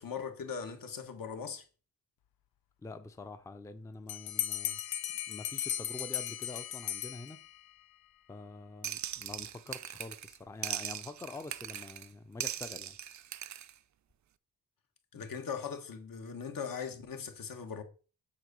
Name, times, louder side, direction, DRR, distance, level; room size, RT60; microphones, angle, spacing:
voice 1, 0.0-1.6 15.1-17.8, left 6 dB, 70° left, 1.4 m, -40 dB
voice 2, 2.8-4.8 5.3-7.4 8.3-13.0 15.1-15.2, left 3 dB, 10° left, 0.5 m, -46 dB
Bell, 4.1-7.7, left 11 dB, 90° left, 0.6 m, -37 dB
sound 1, 8.8-10.4 10.6-12.1 12.4-13.7, right 11 dB, 55° right, 0.4 m, -40 dB
7.7 x 3.8 x 6.7 m
wide cardioid pair, 165°, 35 cm